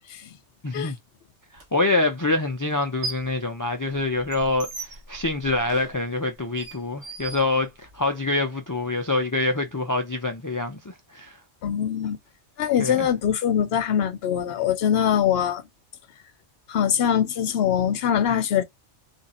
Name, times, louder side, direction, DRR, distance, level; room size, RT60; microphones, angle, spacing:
voice 1, 0.6-1.0 1.7-11.4 12.8-13.1, left 2 dB, 30° left, 0.3 m, -25 dB
sound 1, 1.6-1.7 2.7-3.4 3.7-8.1, right 3 dB, 65° right, 1.4 m, -39 dB
voice 2, 11.6-12.2 12.6-15.6 16.7-18.6, left 9 dB, 65° left, 0.9 m, -23 dB
3.5 x 2.5 x 4.2 m
omnidirectional pair, 1.2 m